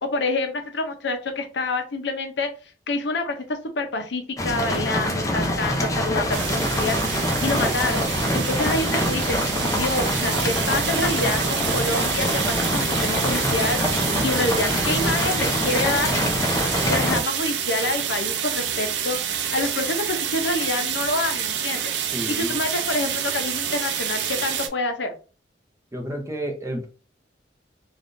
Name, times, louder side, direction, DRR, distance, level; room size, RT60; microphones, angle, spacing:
voice 1, 0.0-2.5 2.9-8.1 8.3-9.4 9.7-13.8 14.2-16.1 16.9-25.2, left 2 dB, 70° left, 5 dB, 0.6 m, -27 dB
sound 1, 4.4-17.2, left 1 dB, 20° left, 0.6 m, -25 dB
sound 2, 6.3-24.7, right 8 dB, 75° right, 0.5 m, -28 dB
voice 2, 22.1-22.6 25.9-26.9, right 1 dB, 15° right, 2 dB, 0.7 m, -30 dB
3.5 x 2.4 x 2.6 m, 0.36 s
head